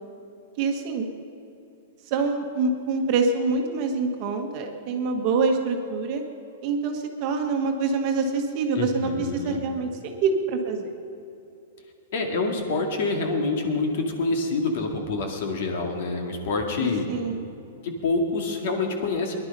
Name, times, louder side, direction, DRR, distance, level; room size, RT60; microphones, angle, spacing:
voice 1, 0.6-1.1 2.1-6.2 6.6-10.9 17.1-17.5, right 4 dB, 30° right, 3 dB, 1.4 m, -25 dB
voice 2, 8.7-9.6 12.1-17.1 17.8-19.3, left 3 dB, 50° left, 3 dB, 2.1 m, -26 dB
21.5 x 11.5 x 5.4 m, 2.8 s
supercardioid pair, 175°, 0 cm